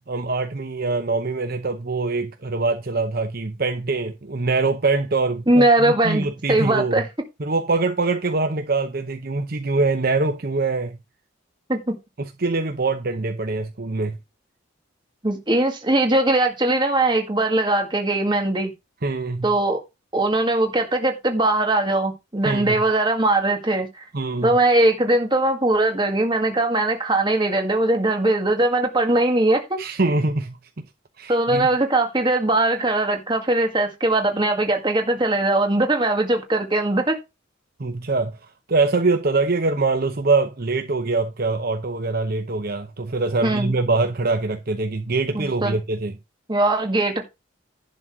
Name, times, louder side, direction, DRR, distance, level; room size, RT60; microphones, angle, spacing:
voice 1, 0.0-7.0 7.4-11.0 12.2-14.2 19.0-19.5 22.4-22.8 24.1-24.6 29.8-30.6 31.2-31.7 37.8-38.3 38.7-46.1, right 3 dB, 45° right, 0.8 m, -23 dB
voice 2, 5.5-7.1 11.7-12.0 15.2-18.7 19.4-19.8 20.1-23.9 24.4-29.8 31.3-37.2 43.4-43.7 45.3-45.8 46.5-47.2, right 2 dB, 20° right, 1.9 m, -20 dB
11.0 x 4.1 x 6.1 m
head